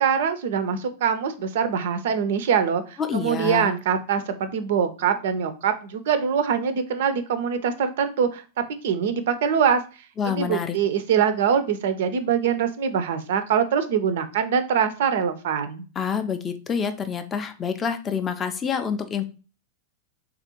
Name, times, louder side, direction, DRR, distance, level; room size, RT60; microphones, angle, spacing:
voice 1, 0.0-8.4 8.8-9.8 10.3-15.8, right 7 dB, 55° right, 11 dB, 0.4 m, -23 dB
voice 2, 3.0-3.7 10.2-10.8 16.0-19.2, left 7 dB, 25° left, 8 dB, 0.4 m, -27 dB
3.4 x 2.4 x 2.9 m, 0.34 s
figure-of-eight pair, 90°, 0 cm